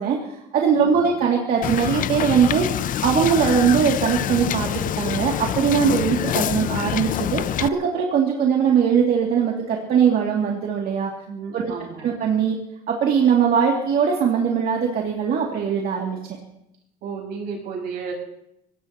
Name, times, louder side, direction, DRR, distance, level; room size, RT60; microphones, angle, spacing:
voice 1, 0.0-2.7 3.0-4.7 5.0-11.1 11.5-11.7 12.0-12.6 12.9-16.2, right 7 dB, 65° right, -1 dB, 2.5 m, -20 dB
voice 2, 0.8-1.2 11.3-12.1 17.0-18.1, right 5 dB, 80° right, -2 dB, 6.3 m, -33 dB
Wind / Boat Water vehicle, 1.6-7.7, left 11 dB, 50° left, 0.5 m, -26 dB
23.5 x 18.5 x 3.0 m, 0.82 s
cardioid pair, 110°, 17 cm